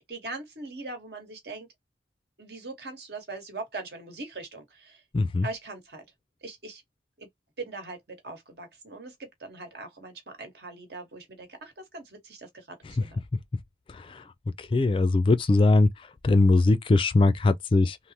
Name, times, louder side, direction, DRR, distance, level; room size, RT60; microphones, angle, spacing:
voice 1, 0.0-1.7 2.4-5.0 5.4-6.0 6.4-6.8 7.2-7.3 7.6-13.2, right 3 dB, 65° right, 1.2 m, -41 dB
voice 2, 5.1-5.5 13.9-14.2 14.6-18.0, left 2 dB, 30° left, 0.3 m, -21 dB
3.3 x 2.1 x 2.7 m
head